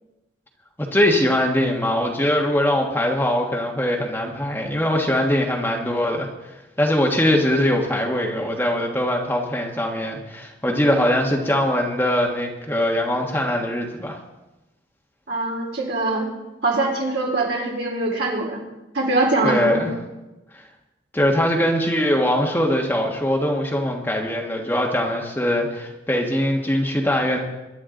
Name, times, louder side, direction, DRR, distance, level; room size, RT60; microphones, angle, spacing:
voice 1, 0.9-6.5 6.8-14.2 19.4-19.9 20.5-20.6 21.1-27.4, left 1 dB, 10° left, 0 dB, 1.4 m, -21 dB
voice 2, 15.3-16.3 16.6-18.6 18.9-19.9, right 2 dB, 65° right, -2 dB, 4.1 m, -23 dB
23.0 x 11.0 x 3.9 m, 1.0 s
head